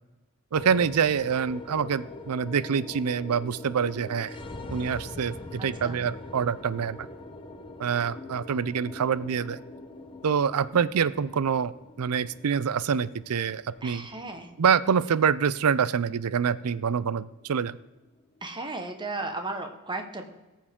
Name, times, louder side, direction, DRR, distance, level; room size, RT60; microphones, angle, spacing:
sound 1, 0.5-18.9, left 2 dB, 25° left, 0.8 m, -44 dB
voice 1, 0.5-4.4 4.7-7.0 7.8-9.6 10.2-11.7 12.0-14.1 14.6-17.8, right 7 dB, 75° right, 17 dB, 0.5 m, -26 dB
voice 2, 5.6-6.1 13.8-14.5 18.4-20.2, right 2 dB, 20° right, 6 dB, 1.2 m, -35 dB
18.5 x 7.3 x 3.6 m, 1.1 s
head